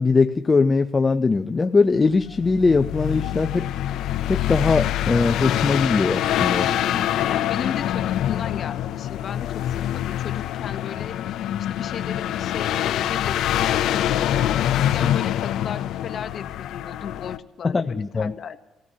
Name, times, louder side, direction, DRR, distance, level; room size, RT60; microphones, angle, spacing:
voice 1, 0.0-3.7 4.3-6.7 15.0-15.1 17.6-18.3, left 4 dB, 30° left, 9 dB, 0.5 m, -21 dB
sound 1, 2.2-17.4, left 12 dB, 85° left, 0.5 m, -25 dB
voice 2, 6.7-11.2 11.7-14.3 14.7-18.6, left 7 dB, 60° left, 9 dB, 0.9 m, -35 dB
29.0 x 17.0 x 2.8 m, 1.1 s
cardioid pair, 90°, 0 cm